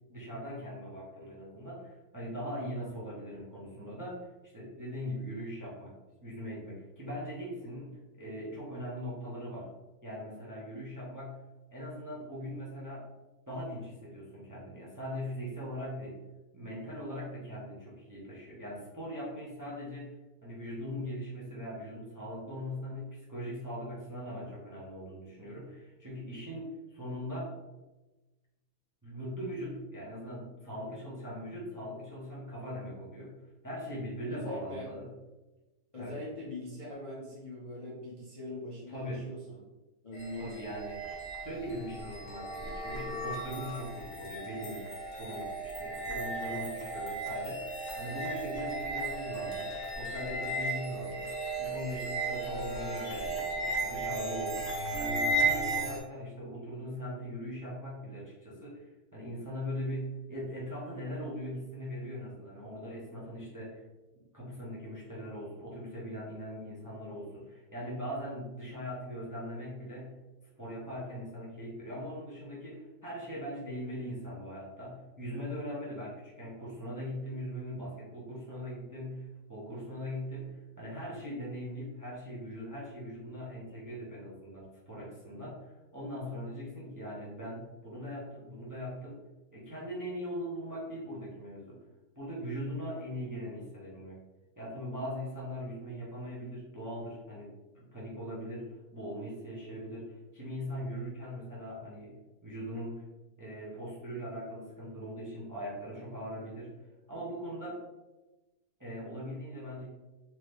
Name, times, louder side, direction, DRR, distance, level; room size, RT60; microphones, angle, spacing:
voice 1, 0.1-5.9 6.2-9.7 10.0-11.4 11.7-13.1 13.5-16.2 16.5-20.1 20.4-27.5 29.0-35.1 35.9-36.1 38.9-39.3 40.4-41.0 41.4-44.8 45.2-47.7 48.0-63.8 64.3-70.2 70.6-89.2 89.5-91.8 92.1-94.2 94.6-102.1 102.4-103.0 103.4-106.8 107.1-107.8 108.8-109.9, equal, 15° right, -6 dB, 0.7 m, -40 dB
voice 2, 34.3-34.9 35.9-39.6 40.0-40.7, left 1 dB, 30° left, -7 dB, 0.6 m, -42 dB
sound 1, 40.1-56.0, right 2 dB, 65° left, 1.6 m, -35 dB
4.0 x 2.9 x 3.3 m, 1.1 s
omnidirectional pair, 1.7 m